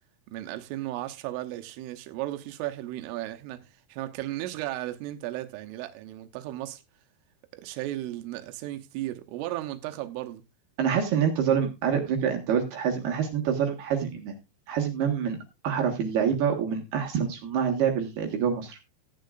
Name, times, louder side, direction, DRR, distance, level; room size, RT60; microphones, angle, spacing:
voice 1, 0.3-6.8 7.5-10.4, right 15 dB, 85° right, 3.5 m, -35 dB
voice 2, 10.8-14.3 14.7-15.4 15.6-18.8, right 7 dB, 65° right, 3.1 m, -26 dB
15.0 x 10.5 x 2.5 m
omnidirectional pair, 5.7 m